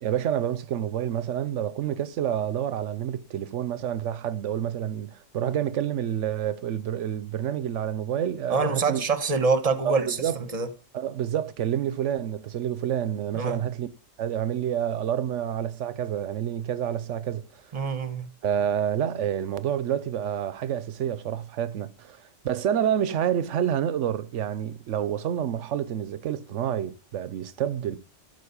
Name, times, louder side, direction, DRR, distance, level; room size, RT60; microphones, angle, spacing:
voice 1, 0.0-9.0 9.8-10.4 10.9-13.9 14.2-17.5 18.4-22.2 22.4-28.0, right 10 dB, 85° right, 1.0 m, -28 dB
voice 2, 8.5-10.2 10.5-10.7 13.3-13.6 17.7-18.3, right 4 dB, 35° right, 1.2 m, -25 dB
12.5 x 4.6 x 8.5 m
omnidirectional pair, 1.2 m